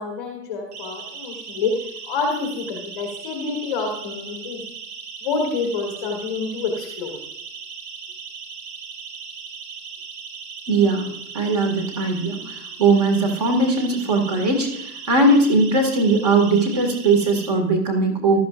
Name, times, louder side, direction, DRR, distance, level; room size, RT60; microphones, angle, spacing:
voice 1, 0.0-1.7 2.1-4.6 5.2-7.2, left 4 dB, 15° left, 0 dB, 1.3 m, -27 dB
Siren, 0.7-17.5, right 5 dB, 40° right, 3.6 m, -37 dB
voice 2, 10.7-11.1 11.3-18.4, right 3 dB, 25° right, 5 dB, 1.9 m, -19 dB
15.5 x 12.5 x 2.5 m, 0.76 s
hypercardioid pair, 180°, 48 cm